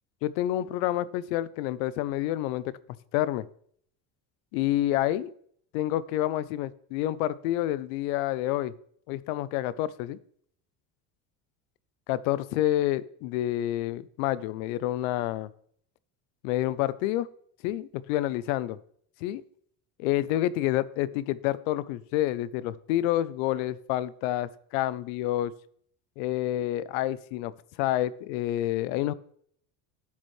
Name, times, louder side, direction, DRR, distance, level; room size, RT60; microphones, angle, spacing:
voice 1, 0.2-2.8 3.1-3.5 4.5-5.3 5.7-8.7 9.1-10.2 12.1-15.5 16.4-17.3 17.6-18.8 19.2-19.4 20.0-25.5 26.2-27.5 27.8-29.1, left 14 dB, 85° left, 18 dB, 0.6 m, -28 dB
11.5 x 7.3 x 3.2 m, 0.63 s
supercardioid pair, 110°, 40 cm